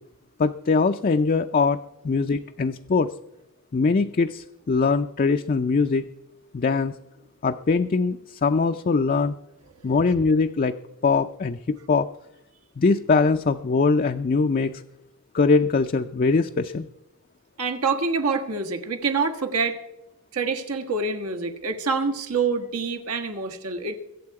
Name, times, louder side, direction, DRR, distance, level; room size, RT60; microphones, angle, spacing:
voice 1, 0.4-1.8 2.0-3.1 3.7-6.0 6.5-6.9 7.4-9.3 9.8-10.8 11.0-12.1 12.8-14.8 15.3-16.9, left 4 dB, 40° left, 7 dB, 0.4 m, -22 dB
voice 2, 17.6-19.8 20.3-24.0, right 4 dB, 85° right, 6 dB, 1.5 m, -26 dB
22.5 x 8.3 x 4.7 m, 0.92 s
head